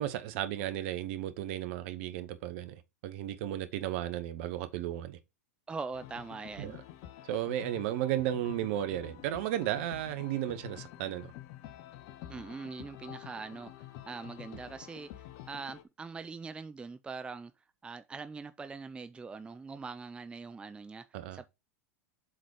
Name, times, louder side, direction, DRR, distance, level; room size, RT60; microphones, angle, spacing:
voice 1, 0.0-5.2 6.6-6.7 7.3-11.3 21.1-21.4, right 12 dB, 55° right, 1.1 m, -34 dB
voice 2, 5.7-6.7 12.3-17.5 17.8-21.1 21.3-21.5, right 4 dB, 10° right, 0.5 m, -42 dB
sound 1, 5.9-15.8, left 13 dB, 50° left, 1.1 m, -48 dB
7.7 x 4.1 x 4.8 m
hypercardioid pair, 95°, 8 cm